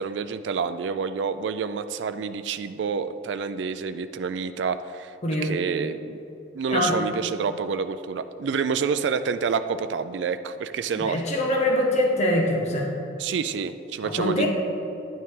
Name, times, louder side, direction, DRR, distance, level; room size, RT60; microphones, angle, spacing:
voice 1, 0.0-5.2 5.4-6.2 6.5-11.2 13.2-14.5, right 6 dB, 70° right, 10 dB, 0.3 m, -28 dB
voice 2, 10.9-12.9 14.0-14.5, left 1 dB, 40° left, 0 dB, 1.1 m, -23 dB
9.6 x 9.4 x 3.7 m, 2.8 s
head